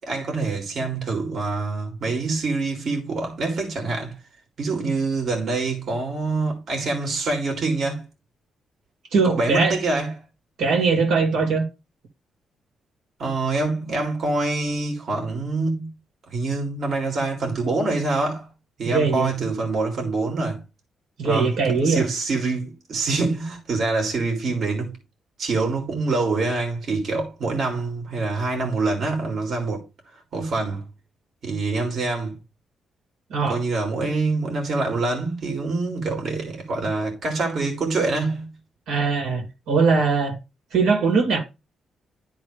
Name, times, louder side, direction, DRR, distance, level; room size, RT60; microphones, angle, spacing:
voice 1, 0.0-4.2 4.6-8.0 9.2-10.1 13.2-15.9 16.3-18.5 18.8-20.6 21.2-21.5 21.8-24.9 25.4-29.9 30.3-30.9 31.4-32.4 33.5-38.5, right 3 dB, 60° right, 2.2 m, -25 dB
voice 2, 9.1-9.8 10.6-11.6 18.9-19.3 21.2-22.0 33.3-33.6 38.9-40.4 40.7-41.4, right 4 dB, 85° right, 2.4 m, -21 dB
11.0 x 3.8 x 3.2 m
cardioid pair, 105°, 0 cm